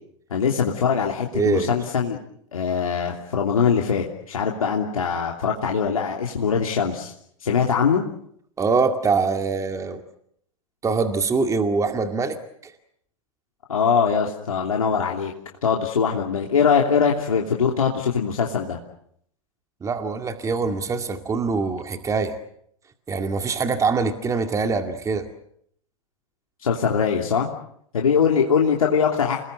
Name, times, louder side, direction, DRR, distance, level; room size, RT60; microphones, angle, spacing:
voice 1, 0.3-2.2 2.5-7.1 7.4-8.0 13.7-15.3 15.6-18.8 26.6-27.5 27.9-29.4, left 6 dB, 80° left, 0 dB, 3.0 m, -22 dB
voice 2, 1.3-1.7 8.6-10.0 10.8-12.7 19.8-22.4 23.1-25.3, right 4 dB, 20° right, 6 dB, 2.2 m, -24 dB
28.5 x 20.0 x 7.9 m, 0.70 s
hypercardioid pair, 105°, 17 cm